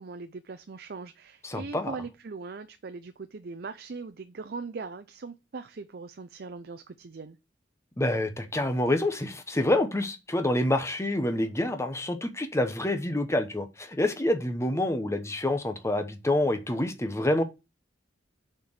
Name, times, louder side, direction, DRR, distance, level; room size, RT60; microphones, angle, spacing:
voice 1, 0.0-7.4, right 4 dB, 55° right, 0.5 m, -40 dB
voice 2, 1.4-1.9 8.0-17.4, left 1 dB, 15° left, 1.0 m, -27 dB
6.3 x 4.5 x 6.6 m
head